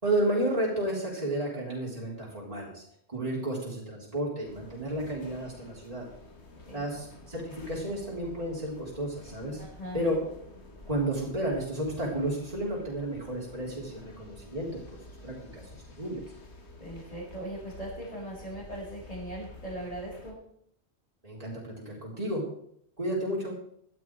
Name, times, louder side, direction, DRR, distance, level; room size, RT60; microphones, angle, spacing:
voice 1, 0.0-2.8 3.1-6.0 6.7-9.6 9.9-10.2 10.9-16.2 21.2-22.4 23.0-23.5, right 1 dB, 35° right, -5 dB, 3.9 m, -32 dB
sound 1, 4.4-20.3, left 2 dB, 75° left, 2.3 m, -50 dB
voice 2, 9.5-10.0 16.8-20.4, right 1 dB, 35° left, -9 dB, 6.2 m, -39 dB
17.0 x 12.0 x 4.7 m, 0.70 s
omnidirectional pair, 1.1 m